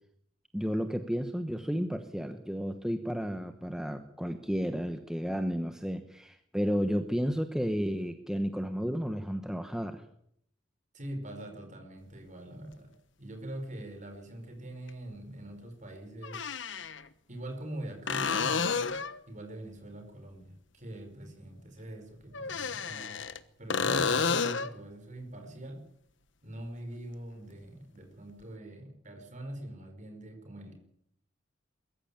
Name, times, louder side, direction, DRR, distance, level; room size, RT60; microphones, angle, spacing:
voice 1, 0.5-10.0, equal, 5° right, 7 dB, 1.1 m, -32 dB
voice 2, 10.9-16.4 17.3-23.3 23.6-25.8 26.4-30.7, right 1 dB, 40° right, 6 dB, 5.0 m, -43 dB
sound 1, 12.7-12.8 14.9-15.0 16.2-17.0 18.1-19.2 22.3-23.4 23.7-24.8 28.4-28.5, left 5 dB, 70° left, 1.2 m, -30 dB
22.0 x 14.5 x 8.8 m, 0.71 s
head